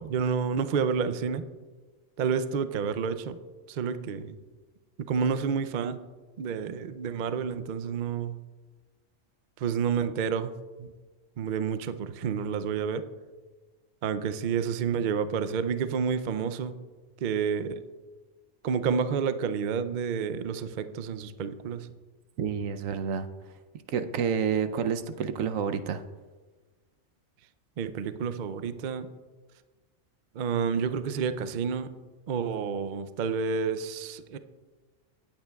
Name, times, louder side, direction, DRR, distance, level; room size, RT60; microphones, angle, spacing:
voice 1, 0.0-1.5 2.2-3.4 3.7-4.4 5.1-6.0 6.4-8.4 9.6-10.9 11.4-13.0 14.0-16.7 17.2-17.8 18.6-21.9 27.8-29.1 30.3-31.9 32.3-34.4, right 6 dB, 60° right, 11 dB, 0.5 m, -29 dB
voice 2, 22.4-23.3 23.9-26.0, right 7 dB, 85° right, 10 dB, 1.1 m, -29 dB
17.5 x 8.9 x 2.3 m, 1.3 s
omnidirectional pair, 1.4 m